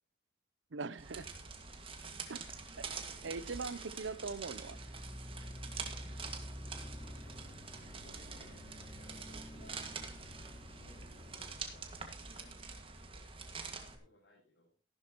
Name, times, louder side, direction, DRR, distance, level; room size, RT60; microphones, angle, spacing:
voice 1, 0.7-1.3 2.3-2.5 2.8-2.9 3.2-4.8, right 4 dB, 80° right, 18 dB, 0.7 m, -41 dB
sound 1, 1.0-13.9, right 5 dB, 30° right, 1.9 m, -46 dB
sound 2, 4.5-11.5, equal, 20° left, 2.4 m, -49 dB
voice 2, 7.0-8.6 8.9-9.9 10.6-14.7, left 1 dB, 75° left, -5 dB, 6.9 m, -64 dB
15.0 x 12.5 x 3.0 m, 0.36 s
head